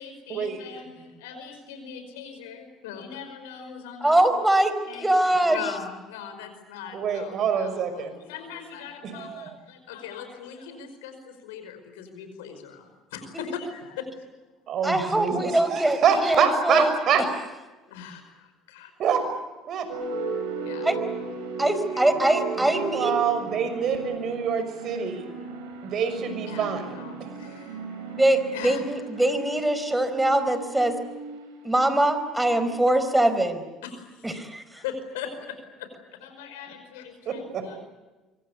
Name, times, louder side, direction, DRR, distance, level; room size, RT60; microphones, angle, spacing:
voice 1, 0.0-4.1 4.9-5.1 5.5-12.8 13.1-14.1 17.9-18.9 20.6-20.9 21.9-22.1 26.5-27.8 28.5-28.8 33.8-34.0 34.7-35.9 36.2-37.8, left 7 dB, 85° left, 8 dB, 5.1 m, -40 dB
voice 2, 4.0-5.7 13.3-13.5 14.8-16.9 20.8-21.0 21.6-23.1 28.1-31.0 31.6-33.6 34.2-34.6, right 1 dB, 10° right, 11 dB, 4.5 m, -23 dB
voice 3, 6.9-8.1 9.0-9.5 14.7-17.2 19.0-19.2 19.7-19.9 22.7-25.2 25.8-27.3 37.3-37.8, right 7 dB, 55° right, 9 dB, 6.1 m, -26 dB
sound 1, 19.9-33.3, right 4 dB, 80° right, 6.0 m, -36 dB
25.0 x 25.0 x 8.3 m, 1.2 s
hypercardioid pair, 70°, 0 cm